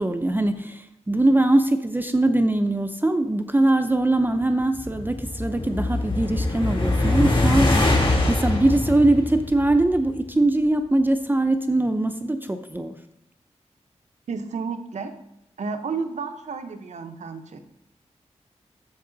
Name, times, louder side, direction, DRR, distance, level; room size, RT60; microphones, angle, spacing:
voice 1, 0.0-7.8 8.3-12.9, right 2 dB, 15° right, 7 dB, 0.5 m, -22 dB
sound 1, 4.6-10.1, left 2 dB, 45° left, 2.3 m, -23 dB
voice 2, 14.3-15.1 15.6-17.8, right 5 dB, 90° right, 8 dB, 0.8 m, -32 dB
13.0 x 4.7 x 3.9 m, 0.80 s
wide cardioid pair, 90°, 12 cm